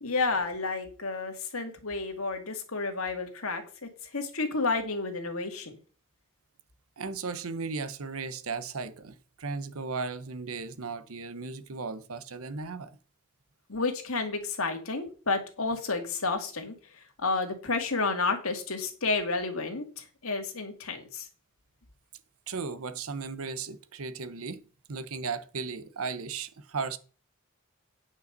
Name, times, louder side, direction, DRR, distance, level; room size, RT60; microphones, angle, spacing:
voice 1, 0.0-5.7 13.7-16.7 17.2-21.3, left 3 dB, 75° left, 2.1 m, -31 dB
voice 2, 7.0-13.0 22.5-27.0, right 4 dB, 75° right, 0.9 m, -36 dB
9.6 x 5.5 x 6.6 m
head